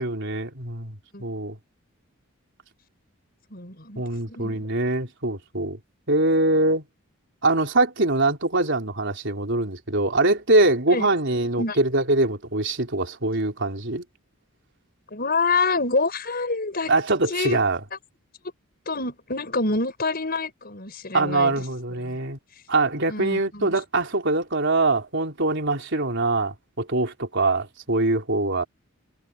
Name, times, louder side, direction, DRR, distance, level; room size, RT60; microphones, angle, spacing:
voice 1, 0.0-1.6 4.0-5.8 6.1-6.8 7.4-14.0 16.9-17.8 21.1-22.4 22.7-28.7, right 2 dB, 60° right, 4.1 m, -23 dB
voice 2, 3.5-4.0 4.3-4.7 10.9-11.1 11.6-11.8 15.1-16.9 17.3-17.6 18.9-21.6 22.0-22.2 23.1-23.7, left 3 dB, 45° left, 5.5 m, -27 dB
head